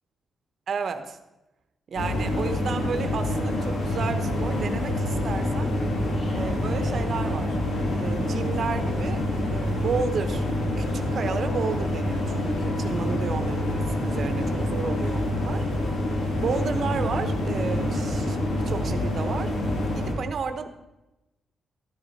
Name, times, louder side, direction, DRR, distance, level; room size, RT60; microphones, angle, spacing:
voice 1, 0.7-1.2 1.9-5.7 6.3-7.6 7.9-9.2 9.5-10.5 10.8-15.7 16.4-19.5 19.9-20.7, right 5 dB, 45° right, 8 dB, 1.0 m, -32 dB
sound 1, 2.0-20.1, left 1 dB, 70° left, 2.8 m, -27 dB
sound 2, 3.9-9.0, equal, 25° left, 4.5 m, -39 dB
13.0 x 10.5 x 4.2 m, 0.98 s
wide cardioid pair, 155°, 0 cm